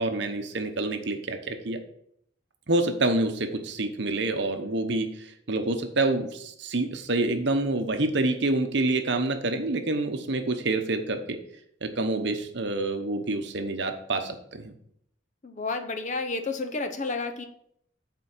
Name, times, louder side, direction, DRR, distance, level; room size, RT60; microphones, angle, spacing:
voice 1, 0.0-1.8 2.7-11.4 11.8-14.7, right 2 dB, 55° right, 6 dB, 0.9 m, -27 dB
voice 2, 15.4-17.4, left 3 dB, 35° left, 6 dB, 0.7 m, -31 dB
8.2 x 4.5 x 6.0 m, 0.69 s
head